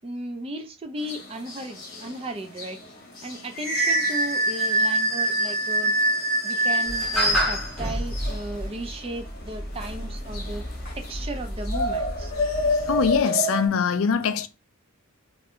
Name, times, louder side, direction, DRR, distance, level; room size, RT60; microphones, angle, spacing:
voice 1, 0.0-2.8 3.2-5.9 6.4-10.6 11.0-12.3, right 1 dB, 25° right, 0.4 m, -35 dB
sound 1, 1.0-13.7, right 1 dB, 45° left, 0.9 m, -27 dB
sound 2, 6.9-13.2, equal, ahead, 0.8 m, -31 dB
voice 2, 12.9-14.5, left 6 dB, 70° left, 0.4 m, -23 dB
2.5 x 2.1 x 3.5 m
head